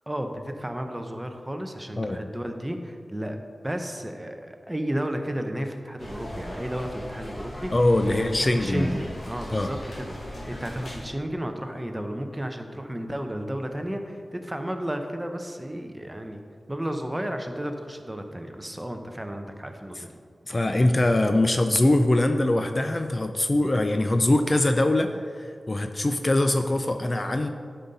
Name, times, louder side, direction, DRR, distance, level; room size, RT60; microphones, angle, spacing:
voice 1, 0.1-7.7 8.0-16.4 16.7-20.2, right 1 dB, 15° right, 5 dB, 0.7 m, -33 dB
sound 1, 6.0-11.0, left 1 dB, 70° left, 2.3 m, -38 dB
voice 2, 7.7-8.9 9.5-9.7 20.5-27.5, left 1 dB, 35° left, 7 dB, 0.4 m, -22 dB
11.0 x 5.5 x 4.0 m, 2.2 s
wide cardioid pair, 90°, 0 cm